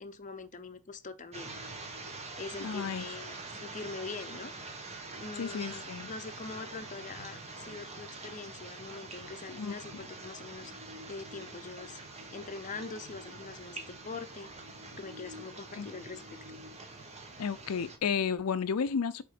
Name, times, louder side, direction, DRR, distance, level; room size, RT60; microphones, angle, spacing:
voice 1, 0.0-1.7 2.4-4.5 5.2-10.7 11.1-12.0 12.3-14.5 15.0-16.6, left 4 dB, 35° left, 0.7 m, -43 dB
sound 1, 1.3-18.0, right 3 dB, 30° right, 1.5 m, -45 dB
voice 2, 2.6-3.0 5.4-6.1 9.5-9.8 15.8-15.9 17.4-19.2, left 6 dB, 75° left, 0.5 m, -32 dB
7.8 x 3.7 x 5.0 m
head